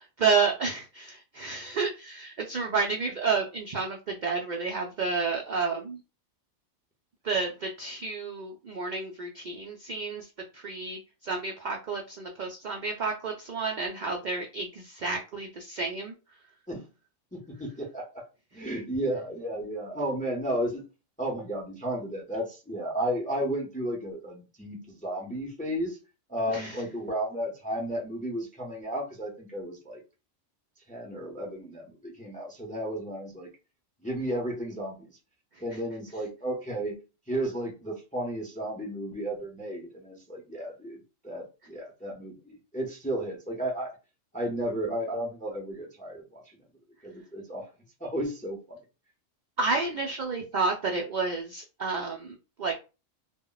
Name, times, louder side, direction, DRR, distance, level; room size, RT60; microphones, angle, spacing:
voice 1, 0.0-6.0 7.2-16.1 26.5-26.8 35.7-35.8 49.6-52.7, right 4 dB, 70° right, 0.4 m, -30 dB
voice 2, 17.3-18.2 18.5-20.8 21.2-26.0 26.3-30.0 30.9-33.5 34.0-35.1 35.6-37.0 37.3-41.0 41.2-43.9 44.3-46.4 47.0-47.7 48.0-48.8, right 1 dB, 10° left, 0.4 m, -33 dB
2.1 x 2.1 x 3.8 m
omnidirectional pair, 1.3 m